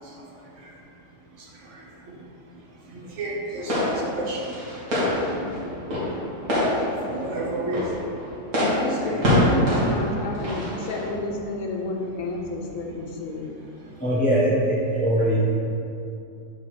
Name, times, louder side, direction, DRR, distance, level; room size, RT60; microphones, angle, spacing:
voice 1, 1.4-2.2 2.9-4.5 7.1-7.9 8.9-9.3, right 2 dB, 60° right, -2 dB, 1.2 m, -33 dB
sound 1, 3.6-11.2, equal, 80° right, 2.3 m, -25 dB
sound 2, 5.1-6.2 7.1-8.2 9.1-10.2 11.1-11.6 12.4-12.9, left 2 dB, 90° left, 0.4 m, -41 dB
voice 2, 8.6-13.5, left 2 dB, 65° left, 0 dB, 1.0 m, -30 dB
voice 3, 14.0-15.4, equal, 10° left, -7 dB, 0.4 m, -21 dB
4.7 x 4.6 x 5.8 m, 2.6 s
omnidirectional pair, 1.6 m